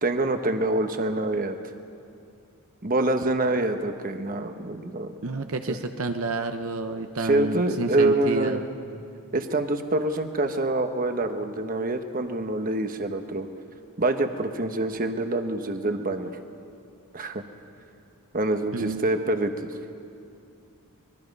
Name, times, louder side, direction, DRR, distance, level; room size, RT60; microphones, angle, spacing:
voice 1, 0.0-1.6 2.8-5.1 5.7-5.8 7.2-8.6 9.3-13.5 14.0-16.3 17.1-17.4 18.3-19.7, right 2 dB, 40° right, 7 dB, 1.1 m, -26 dB
voice 2, 5.2-8.7 18.7-19.0, right 3 dB, 65° right, 6 dB, 0.9 m, -30 dB
24.5 x 21.0 x 5.4 m, 2.6 s
head